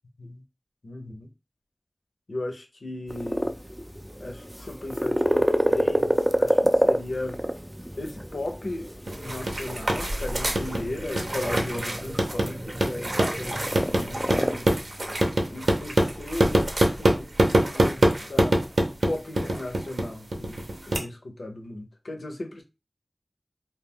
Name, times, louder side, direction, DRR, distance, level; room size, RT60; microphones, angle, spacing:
voice 1, 0.8-1.3 2.3-3.5 4.2-7.4 8.0-8.9 9.2-14.7 15.5-18.6 19.1-22.6, left 1 dB, 85° left, 0.6 m, -36 dB
sound 1, 3.1-14.6, equal, 5° right, 0.3 m, -28 dB
sound 2, 9.1-21.0, right 1 dB, 65° right, 0.7 m, -25 dB
2.3 x 2.2 x 3.5 m
wide cardioid pair, 65°, 0 cm